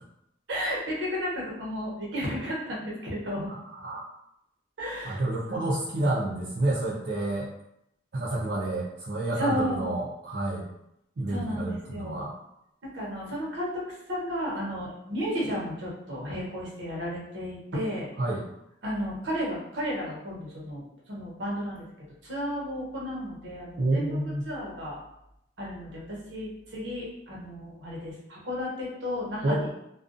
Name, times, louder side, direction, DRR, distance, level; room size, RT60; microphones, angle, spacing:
voice 1, 0.5-3.5 4.8-5.2 5.5-5.7 9.4-9.9 11.3-12.3 12.8-13.7 14.1-18.1 18.8-20.8 21.1-21.8 22.2-25.0 25.6-29.7, equal, 85° right, -4 dB, 0.9 m, -33 dB
voice 2, 3.5-4.0 5.0-7.5 8.1-10.7 11.2-12.3 18.2-18.4 23.8-24.5 29.4-29.7, right 1 dB, 65° right, -8 dB, 0.5 m, -29 dB
2.4 x 2.2 x 2.5 m, 0.80 s
head